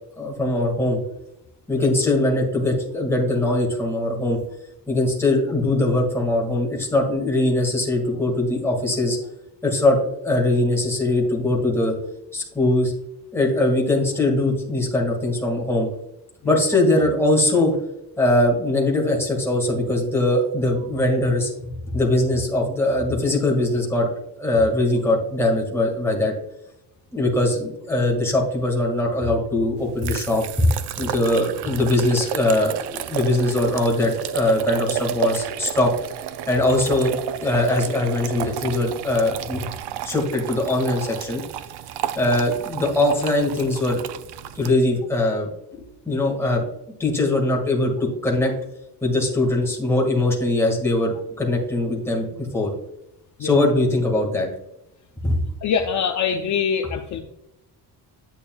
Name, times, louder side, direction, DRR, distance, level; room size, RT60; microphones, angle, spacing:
voice 1, 0.2-1.0 1.7-4.4 4.9-9.2 9.6-11.9 12.3-12.9 13.3-15.9 16.4-17.7 18.2-24.1 24.4-26.3 27.1-30.7 31.0-35.9 36.5-37.1 37.4-39.7 40.0-41.4 42.1-44.0 44.6-45.5 46.0-46.6 47.0-48.5 49.0-52.3 52.5-52.7 53.4-54.5 55.2-55.4, left 2 dB, 5° left, -2 dB, 1.8 m, -21 dB
sound 1, 29.8-44.7, right 11 dB, 85° right, 0.6 m, -32 dB
voice 2, 55.6-57.2, left 7 dB, 45° left, 4 dB, 0.6 m, -24 dB
8.9 x 8.6 x 2.3 m, 0.87 s
cardioid pair, 170°, 39 cm